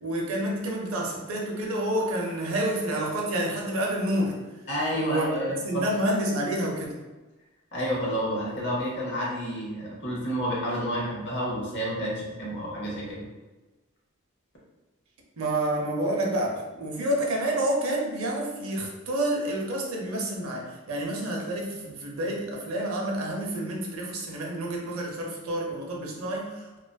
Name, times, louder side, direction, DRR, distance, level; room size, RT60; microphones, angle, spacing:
voice 1, 0.0-4.4 4.9-6.9 15.4-26.8, right 1 dB, 90° right, -1 dB, 0.5 m, -29 dB
voice 2, 4.7-5.8 7.7-13.2, equal, 55° left, -4 dB, 0.8 m, -30 dB
2.4 x 2.4 x 2.2 m, 1.2 s
head